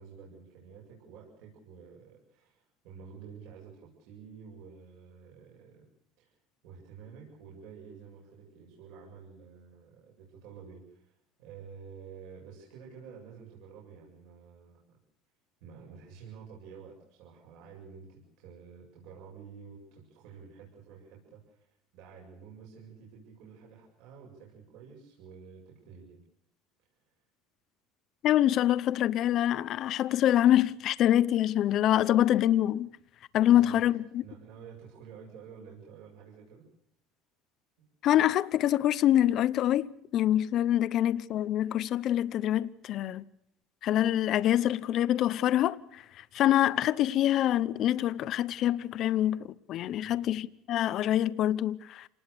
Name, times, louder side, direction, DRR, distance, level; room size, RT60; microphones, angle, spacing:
voice 1, 0.0-5.9 6.2-6.4 6.6-15.0 15.6-26.2 33.5-33.8 34.2-36.7 37.8-37.9 50.0-50.3, right 6 dB, 65° right, 7.3 m, -50 dB
voice 2, 28.2-32.9 33.3-34.2 38.0-39.9 40.1-43.2 43.8-45.8 46.3-52.1, left 12 dB, 40° left, 0.8 m, -25 dB
28.0 x 19.5 x 6.7 m
cardioid pair, 160°, 0 cm